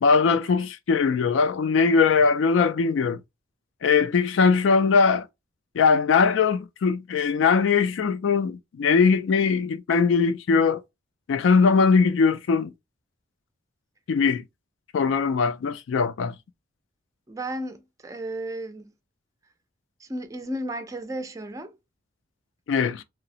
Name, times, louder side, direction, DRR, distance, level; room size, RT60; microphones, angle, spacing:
voice 1, 0.0-3.2 3.8-5.3 5.8-10.8 11.3-12.7 14.1-14.4 14.9-16.3 22.7-23.0, left 5 dB, 80° left, 0.3 m, -21 dB
voice 2, 17.3-18.9 20.0-21.7, right 1 dB, 15° right, 0.3 m, -33 dB
2.7 x 2.0 x 2.7 m
head